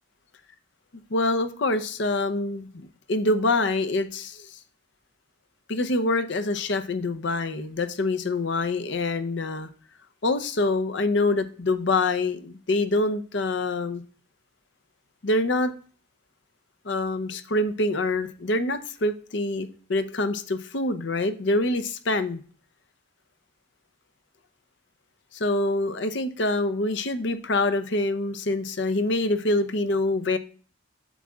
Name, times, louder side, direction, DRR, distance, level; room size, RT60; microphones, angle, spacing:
voice 1, 1.1-2.7 3.1-4.6 5.7-9.7 10.2-14.0 15.2-15.7 16.8-22.4 25.3-30.4, left 2 dB, 60° left, 11 dB, 0.7 m, -25 dB
8.0 x 7.4 x 2.3 m, 0.42 s
head